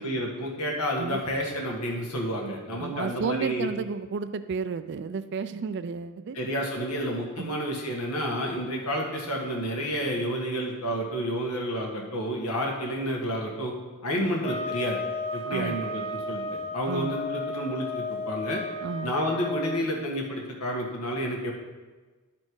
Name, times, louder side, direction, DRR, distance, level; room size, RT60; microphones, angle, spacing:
voice 1, 0.0-3.7 6.3-13.7 14.0-15.0 15.3-16.4 16.7-18.6 19.0-21.5, equal, 85° left, -1 dB, 1.6 m, -30 dB
voice 2, 2.8-6.4 7.4-7.6 14.2-14.3 15.5-15.8 16.8-17.2 18.8-19.2, right 5 dB, 50° right, 12 dB, 0.4 m, -32 dB
sound 1, 14.4-19.8, left 2 dB, 25° left, 0.8 m, -34 dB
11.5 x 4.3 x 4.7 m, 1.3 s
head